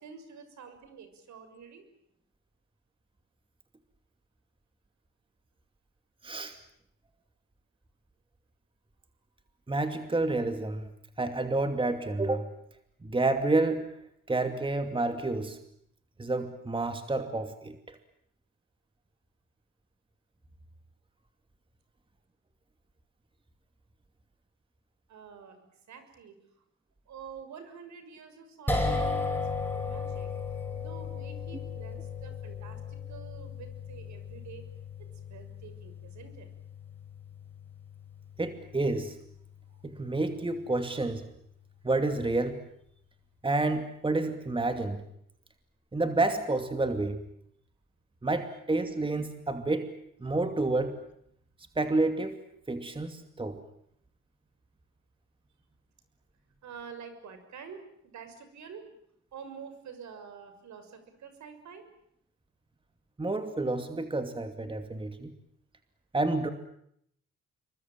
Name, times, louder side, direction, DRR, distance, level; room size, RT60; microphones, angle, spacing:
voice 1, 0.0-1.8 25.1-26.4 27.1-29.2 29.6-30.3 30.7-34.7 35.3-36.5 56.6-58.8 59.3-61.9, right 6 dB, 70° right, 9 dB, 6.4 m, -48 dB
voice 2, 6.2-6.6 9.7-10.9 11.2-12.5 13.0-14.0 14.3-15.6 16.2-18.0 38.4-39.2 39.8-41.3 41.8-42.6 43.4-45.0 45.9-47.2 48.2-49.9 50.2-51.0 51.8-52.4 52.7-53.6 63.2-65.3 66.1-66.5, right 2 dB, 15° right, 7 dB, 2.6 m, -29 dB
sound 1, 28.7-41.0, left 3 dB, 5° left, 7.6 m, -36 dB
27.5 x 23.0 x 9.0 m, 0.73 s
cardioid pair, 90°, 30 cm